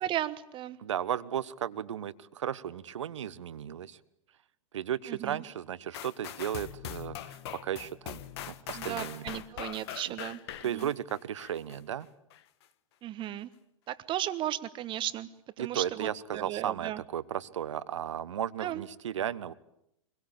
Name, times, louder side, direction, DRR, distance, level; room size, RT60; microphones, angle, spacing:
voice 1, 0.0-0.8 5.1-5.4 8.7-10.4 10.7-10.9 13.0-13.5 13.9-15.3 15.6-17.0 18.6-18.8, right 13 dB, 30° right, 14 dB, 1.3 m, -35 dB
voice 2, 0.8-4.0 4.7-7.4 7.6-8.2 8.5-9.2 10.1-10.2 10.6-12.1 15.6-19.5, right 10 dB, 70° right, 16 dB, 1.1 m, -35 dB
sound 1, 5.9-11.8 12.3-12.4, left 11 dB, 55° left, 1.4 m, -42 dB
24.5 x 22.0 x 8.6 m, 0.78 s
figure-of-eight pair, 100°, 16 cm